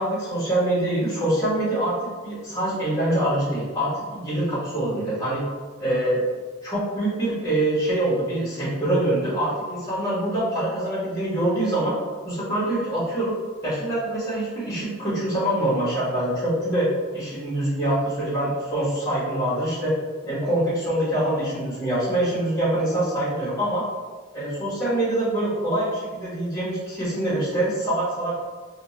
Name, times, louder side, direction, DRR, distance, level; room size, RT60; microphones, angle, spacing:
voice 1, 0.0-1.9 2.2-5.4 5.8-6.2 6.6-11.9 12.2-13.3 13.6-16.9 17.1-19.9 20.2-23.8 24.3-28.4, right 1 dB, 15° left, -9 dB, 1.2 m, -24 dB
2.7 x 2.2 x 2.8 m, 1.4 s
head